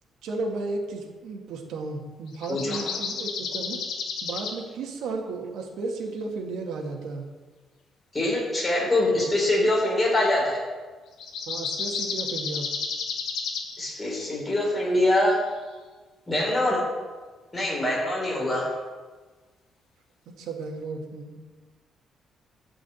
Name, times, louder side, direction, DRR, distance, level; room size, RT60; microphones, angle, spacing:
voice 1, 0.2-3.8 4.2-7.3 11.5-12.7 18.3-18.6 20.3-21.4, right 3 dB, 80° right, 1 dB, 1.9 m, -34 dB
sound 1, 2.3-4.6 9.0-9.2 10.2-10.4 11.2-14.3 15.4-15.6, left 5 dB, 80° left, 1.9 m, -32 dB
voice 2, 2.5-2.8 8.1-10.6 13.8-15.4 16.3-16.8 17.5-18.7, left 1 dB, 15° left, -4 dB, 3.7 m, -24 dB
13.0 x 5.1 x 8.5 m, 1.3 s
cardioid pair, 175°, 0 cm